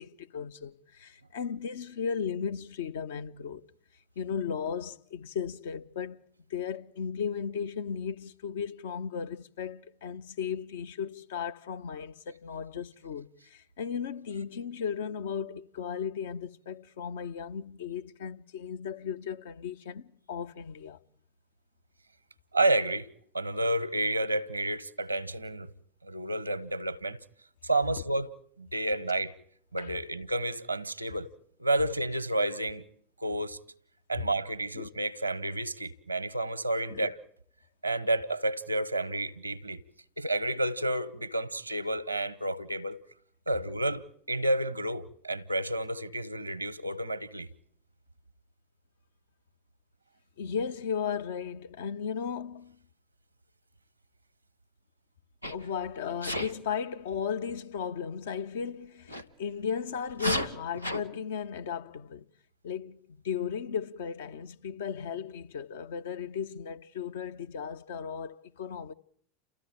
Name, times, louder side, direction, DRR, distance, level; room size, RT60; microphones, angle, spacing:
voice 1, 0.0-3.6 4.2-6.2 6.5-21.0 29.8-29.9 34.7-34.9 36.9-37.1 50.4-52.8 55.5-62.3 62.6-68.9, left 7 dB, 60° left, 0.9 m, -36 dB
voice 2, 22.5-23.1 23.3-25.7 26.0-27.2 27.6-29.3 29.7-31.3 31.6-32.8 33.2-33.6 34.1-37.2 37.8-39.8 40.2-43.0 43.5-47.5, right 1 dB, 85° right, 1.1 m, -30 dB
Sneeze, 55.4-55.7 56.2-56.5 59.1-59.2 60.1-61.0, equal, 90° left, 1.1 m, -32 dB
30.0 x 14.0 x 8.8 m
figure-of-eight pair, 80°, 0 cm